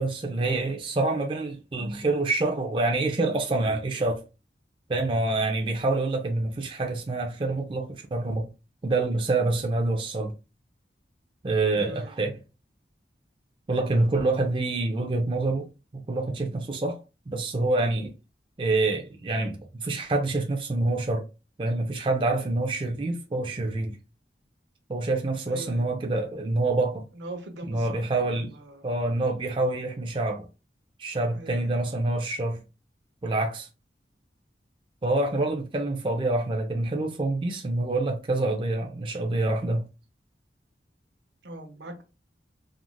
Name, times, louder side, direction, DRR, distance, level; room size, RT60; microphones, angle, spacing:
voice 1, 0.0-4.2 4.9-8.5 8.8-10.3 11.4-12.3 13.7-15.7 15.9-17.0 17.3-18.1 18.6-21.3 21.6-24.0 24.9-27.0 27.7-28.5 28.8-30.5 31.0-32.6 33.2-33.7 35.0-39.9, right 2 dB, 30° right, 0.4 m, -26 dB
voice 2, 11.7-12.2 13.9-14.0 25.5-25.9 27.1-28.8 31.3-31.7 41.4-42.0, right 1 dB, 85° right, 0.7 m, -42 dB
3.1 x 2.4 x 2.2 m
head